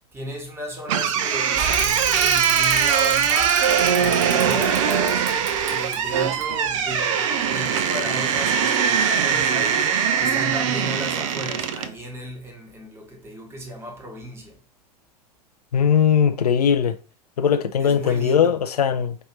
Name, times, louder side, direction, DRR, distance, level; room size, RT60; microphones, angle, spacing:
voice 1, 0.1-5.3 5.7-9.9 10.2-14.6 17.8-18.5, equal, 10° right, 1.4 m, -34 dB
sound 1, 0.9-11.9, right 8 dB, 50° right, 0.5 m, -21 dB
Bicycle / Mechanisms, 1.5-7.0, right 4 dB, 30° right, 1.3 m, -32 dB
voice 2, 15.7-16.9 17.4-19.2, left 8 dB, 70° left, 0.6 m, -19 dB
5.4 x 2.8 x 3.1 m
figure-of-eight pair, 95°, 21 cm